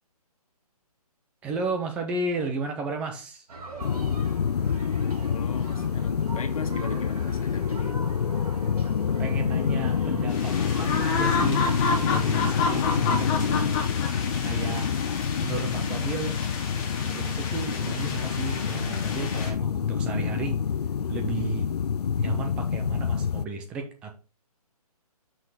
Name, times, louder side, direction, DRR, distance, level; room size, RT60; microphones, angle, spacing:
voice 1, 1.4-3.5 9.2-13.7 14.4-14.9 15.4-16.4 17.0-20.7 21.1-21.7 22.2-24.1, right 4 dB, 5° right, 0.4 m, -34 dB
sound 1, 3.5-12.5, right 2 dB, 70° right, 3.0 m, -42 dB
sound 2, 3.8-23.4, left 7 dB, 80° left, 0.5 m, -27 dB
voice 2, 5.3-7.9, left 5 dB, 65° left, 1.6 m, -37 dB
sound 3, 10.3-19.5, left 4 dB, 20° left, 1.5 m, -31 dB
6.1 x 5.3 x 4.8 m
hypercardioid pair, 155°, 20 cm